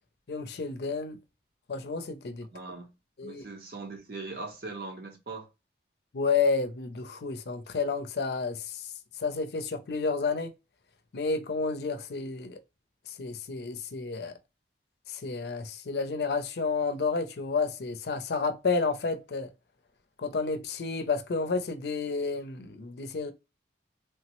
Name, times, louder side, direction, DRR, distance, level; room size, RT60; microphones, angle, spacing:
voice 1, 0.3-1.2 1.7-2.5 3.2-3.4 6.1-8.8 9.2-10.5 11.1-12.6 13.2-14.3 15.1-19.5 20.2-23.3, left 4 dB, 70° left, 0.5 m, -30 dB
voice 2, 2.5-2.9 3.2-5.5, right 3 dB, 60° right, 0.8 m, -40 dB
3.3 x 2.0 x 2.9 m
head